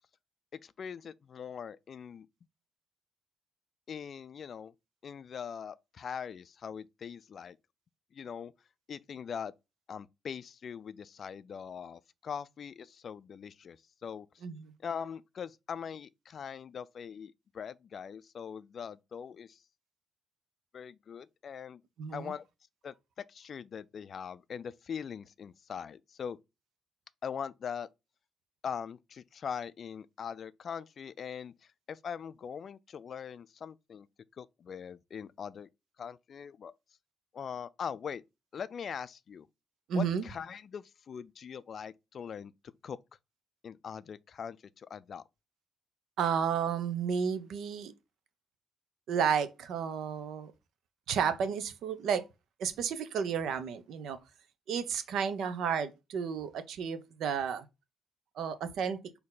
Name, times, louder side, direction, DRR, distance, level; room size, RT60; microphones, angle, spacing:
voice 1, 0.6-2.3 3.9-4.7 5.0-7.6 8.1-8.5 8.9-9.5 9.9-14.3 14.8-19.6 20.7-21.8 22.1-22.4 22.8-26.4 27.2-27.9 28.6-31.5 31.9-34.1 34.4-35.7 36.0-36.7 37.3-38.2 38.5-39.5 39.9-42.5 42.8-43.0 43.6-45.2, left 7 dB, 50° left, 0.3 m, -41 dB
voice 2, 14.4-14.7 22.0-22.3 39.9-40.2 46.2-47.9 49.1-50.5 51.1-52.2 52.6-54.2 54.7-57.7 58.4-59.0, right 7 dB, 75° right, 0.6 m, -32 dB
4.2 x 2.7 x 3.9 m
cardioid pair, 90°, 0 cm